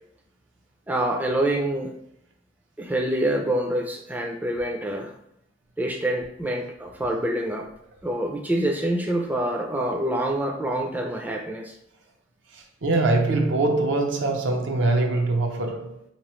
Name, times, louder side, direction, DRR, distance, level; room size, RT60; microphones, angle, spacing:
voice 1, 0.9-1.9 2.8-5.2 5.8-7.6 8.0-11.7, right 1 dB, 10° right, 0.3 m, -26 dB
voice 2, 12.5-16.0, right 2 dB, 75° right, 0.7 m, -23 dB
3.8 x 2.9 x 3.0 m
head